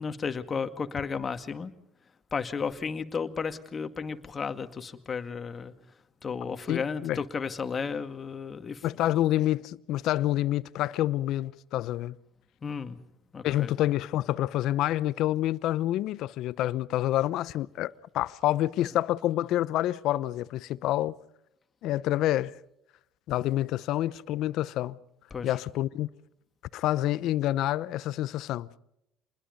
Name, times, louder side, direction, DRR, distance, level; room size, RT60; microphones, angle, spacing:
voice 1, 0.0-1.7 2.3-5.7 6.2-8.9 12.6-13.0 13.3-13.7 25.3-25.5, left 5 dB, 35° left, 2.1 m, -33 dB
voice 2, 6.7-7.2 8.8-12.2 13.4-21.1 21.8-22.5 23.3-25.0 25.4-26.1 26.7-28.7, left 14 dB, 70° left, 0.8 m, -28 dB
28.0 x 21.0 x 5.4 m
supercardioid pair, 75°, 0 cm